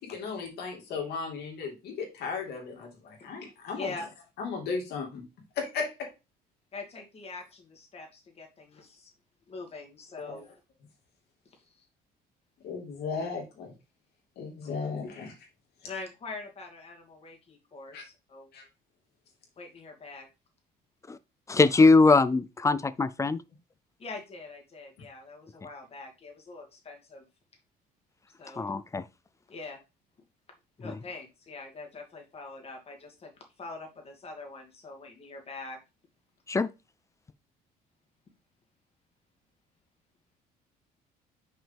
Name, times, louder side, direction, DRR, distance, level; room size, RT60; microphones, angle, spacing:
voice 1, 0.0-3.9 4.4-5.2 5.6-5.9 10.2-10.4 12.6-13.7 14.4-15.3 17.9-18.0 18.5-18.6, left 5 dB, 70° left, 2.8 m, -35 dB
voice 2, 3.8-4.1 6.7-9.1 9.5-10.5 11.5-11.9 14.6-14.7 15.8-18.5 19.6-20.3 24.0-27.2 28.4-28.8 29.5-29.8 30.8-33.3 33.6-35.8, left 3 dB, 35° left, 2.5 m, -43 dB
voice 3, 21.5-23.4 28.6-29.0 36.5-36.7, left 3 dB, 20° left, 0.4 m, -21 dB
6.0 x 5.1 x 3.5 m
cardioid pair, 110°, 17 cm